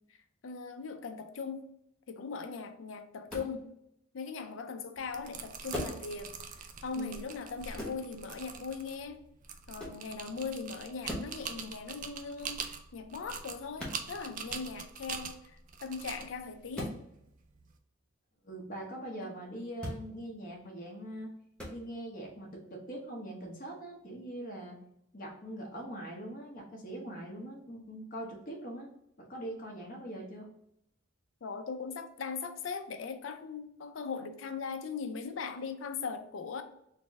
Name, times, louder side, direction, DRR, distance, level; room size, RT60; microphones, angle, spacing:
voice 1, 0.4-1.7 2.1-3.7 4.1-9.2 9.7-16.9 19.2-19.3 31.4-36.6, left 5 dB, 65° left, 0.4 m, -40 dB
sound 1, 3.3-3.6 5.7-6.0 7.8-8.0 9.8-10.0 11.0-11.4 13.8-14.0 16.7-17.0 19.8-20.0 21.6-21.8, left 1 dB, 5° left, 0.9 m, -38 dB
sound 2, 5.0-17.7, right 6 dB, 40° right, 0.4 m, -44 dB
voice 2, 18.4-21.3 21.7-24.8 25.1-28.9 29.2-30.5, right 1 dB, 45° left, 0.9 m, -42 dB
4.0 x 2.0 x 3.4 m
head